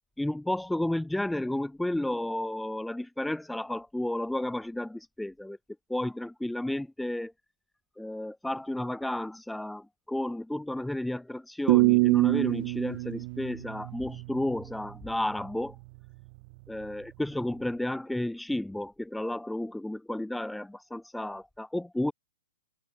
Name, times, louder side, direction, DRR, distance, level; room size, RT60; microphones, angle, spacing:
voice 1, 0.2-5.6 5.9-7.3 8.0-15.8 16.7-22.1, left 1 dB, ahead, 2.8 m, -32 dB
sound 1, 11.7-14.6, right 29 dB, 35° right, 0.9 m, -25 dB
hypercardioid pair, 160°, 0 cm